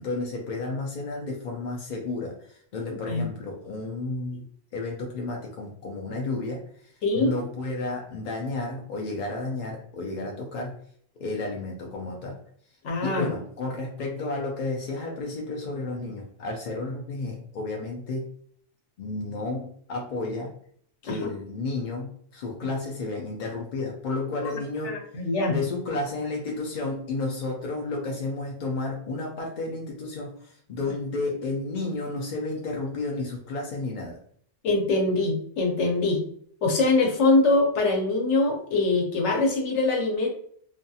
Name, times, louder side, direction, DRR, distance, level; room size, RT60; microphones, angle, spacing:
voice 1, 0.0-4.5 4.7-10.8 11.2-12.4 13.0-18.3 19.0-20.5 21.0-25.0 25.5-34.2, left 3 dB, 60° left, 0 dB, 0.5 m, -32 dB
voice 2, 7.0-7.3 12.8-13.3 21.1-21.3 24.8-25.6 34.6-36.2 36.6-40.3, left 2 dB, 75° left, 1 dB, 1.0 m, -23 dB
2.5 x 2.3 x 2.7 m, 0.62 s
omnidirectional pair, 1.2 m